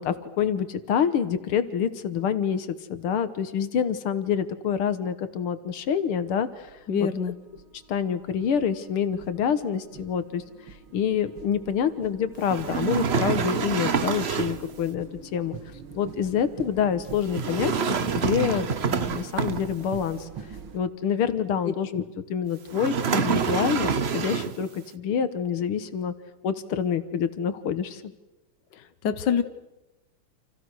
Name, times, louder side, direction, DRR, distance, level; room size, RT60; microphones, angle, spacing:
voice 1, 0.0-6.7 7.0-7.1 7.9-10.4 10.9-15.6 15.9-20.3 20.7-22.0 22.3-26.1 26.4-28.0, left 8 dB, 85° left, 12 dB, 2.2 m, -27 dB
sound 1, 5.7-5.8 6.5-20.8, right 6 dB, 70° right, 2.8 m, -44 dB
voice 2, 6.9-7.3 28.7-29.4, left 7 dB, 60° left, 11 dB, 1.8 m, -26 dB
sound 2, 12.4-14.7 17.3-20.0 22.7-24.7, right 6 dB, 40° right, 0.9 m, -27 dB
29.5 x 28.0 x 6.4 m, 0.99 s
omnidirectional pair, 2.3 m